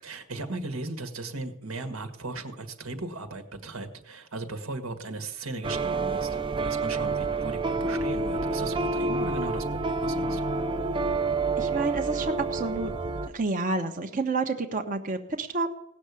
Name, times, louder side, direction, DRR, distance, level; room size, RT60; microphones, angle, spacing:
voice 1, 0.0-10.5, right 2 dB, 85° right, 7 dB, 1.7 m, -37 dB
sound 1, 5.6-13.3, right 3 dB, 25° right, 0.5 m, -28 dB
voice 2, 11.6-12.9 13.3-15.8, right 3 dB, 40° right, 4 dB, 1.0 m, -29 dB
17.5 x 6.6 x 8.3 m, 0.82 s
head